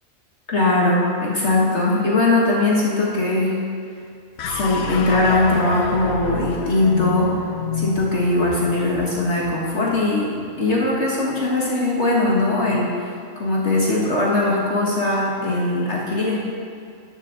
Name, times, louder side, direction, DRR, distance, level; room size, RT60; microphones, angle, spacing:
voice 1, 0.5-3.7 4.5-7.4 7.7-10.3 10.6-12.9 13.4-16.4, left 2 dB, 55° left, -4 dB, 1.7 m, -20 dB
sound 1, 4.4-10.8, left 5 dB, 80° left, 1.1 m, -30 dB
13.0 x 9.0 x 3.8 m, 2.3 s
omnidirectional pair, 1.5 m